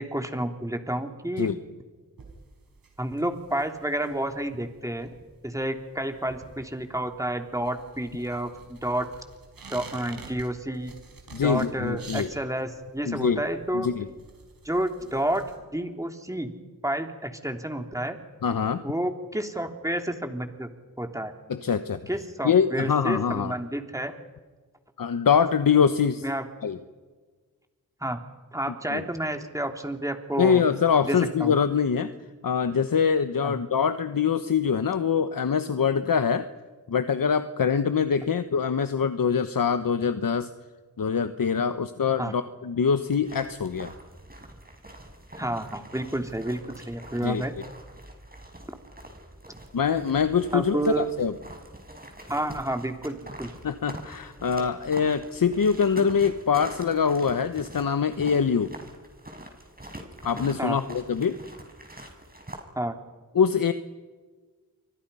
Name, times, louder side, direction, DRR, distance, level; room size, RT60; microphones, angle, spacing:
voice 1, 0.0-1.5 3.0-5.1 5.4-9.1 9.7-10.9 11.4-13.9 14.6-15.4 15.7-16.5 16.8-18.2 18.8-20.7 21.0-21.3 22.1-24.2 26.2-26.4 28.0-28.2 28.5-30.6 31.0-31.6 33.4-33.6 42.2-42.3 45.4-47.6 50.5-51.2 52.3-53.5 60.6-60.8 62.7-63.0, right 1 dB, 10° right, 5 dB, 3.2 m, -30 dB
sound 1, 2.2-15.6, right 4 dB, 80° right, 5.4 m, -49 dB
voice 2, 11.3-12.3 13.1-13.4 13.7-14.0 18.4-18.8 21.5-22.0 22.4-23.5 25.0-26.3 26.6-26.8 28.9-29.0 30.4-32.1 32.4-36.5 36.9-40.5 41.0-43.9 47.2-47.4 49.7-51.3 53.6-58.7 60.2-61.4 63.3-63.7, left 6 dB, 70° left, 10 dB, 1.2 m, -24 dB
sound 2, 43.2-62.6, right 1 dB, 25° right, 6.1 m, -44 dB
29.0 x 24.5 x 5.7 m, 1.4 s
cardioid pair, 45°, 35 cm